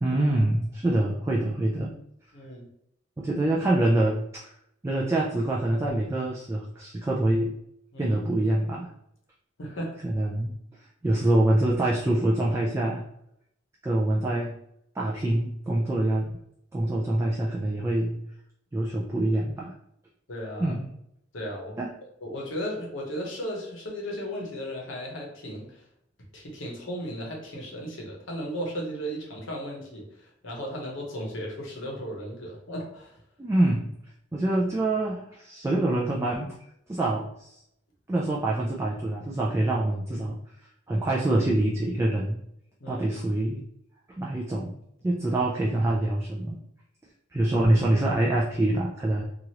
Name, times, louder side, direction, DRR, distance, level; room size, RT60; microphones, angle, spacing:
voice 1, 0.0-1.9 3.2-4.5 4.8-7.5 8.0-8.9 10.0-10.5 11.0-13.0 13.8-14.6 15.0-16.3 16.7-18.2 18.7-19.7 20.6-20.9 21.8-21.9 33.4-33.9 34.3-36.5 36.9-37.5 38.1-40.4 40.9-42.4 42.9-43.6 44.2-44.7 45.0-46.6 47.3-49.2, right 1 dB, 15° right, -3 dB, 0.3 m, -25 dB
voice 2, 2.3-2.7 7.9-8.2 9.6-10.0 17.2-17.3 20.3-20.7 21.3-21.8 22.2-25.8 26.3-33.1 42.8-43.1, equal, 85° left, -1 dB, 0.9 m, -35 dB
2.9 x 2.4 x 2.8 m, 0.76 s
head